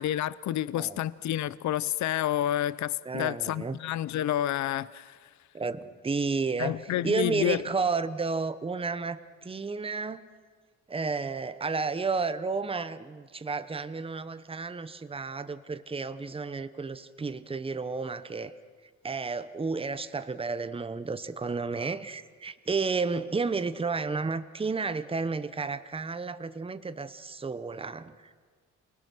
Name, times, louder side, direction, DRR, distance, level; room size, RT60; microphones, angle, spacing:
voice 1, 0.0-5.2 6.6-7.6, left 12 dB, 65° left, 0.6 m, -29 dB
voice 2, 3.0-3.8 5.5-10.2 10.9-18.5 19.0-28.3, right 4 dB, 20° right, 1.0 m, -32 dB
28.0 x 19.5 x 6.3 m
cardioid pair, 95°, 31 cm